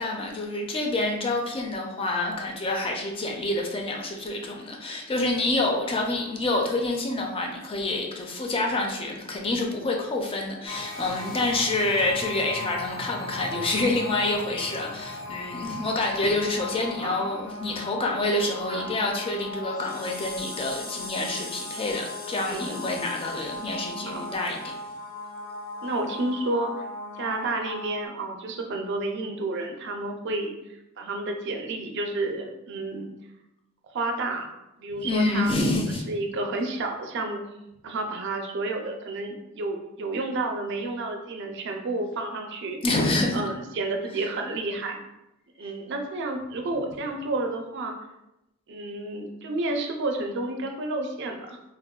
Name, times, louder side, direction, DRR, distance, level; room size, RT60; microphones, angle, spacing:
voice 1, 0.0-24.8 35.0-36.0 42.8-43.4, left 2 dB, 25° left, 1 dB, 0.4 m, -27 dB
sound 1, 10.7-28.1, left 3 dB, 80° left, 0.6 m, -37 dB
voice 2, 22.4-22.9 24.1-24.3 25.8-26.7 27.2-33.1 33.9-34.5 34.8-37.4 37.8-42.8 43.3-45.0 45.6-48.0 48.7-51.6, right 2 dB, 55° right, 3 dB, 0.4 m, -31 dB
3.4 x 2.1 x 2.2 m, 0.90 s
head